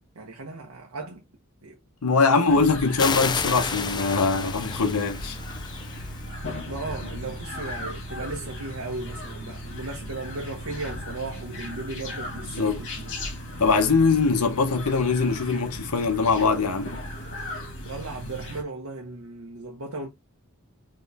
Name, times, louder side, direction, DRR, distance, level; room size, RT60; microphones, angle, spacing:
voice 1, 0.2-1.2 1.6-1.7 2.5-2.6 6.7-13.1 17.9-20.1, right 3 dB, 70° right, 0.9 m, -36 dB
voice 2, 2.0-5.4 12.5-12.8 13.6-16.9, left 4 dB, 85° left, 0.8 m, -22 dB
sound 1, 2.5-18.6, left 1 dB, 55° left, 1.8 m, -37 dB
sound 2, 3.0-6.3, left 5 dB, 20° left, 0.4 m, -31 dB
4.3 x 3.1 x 3.4 m
head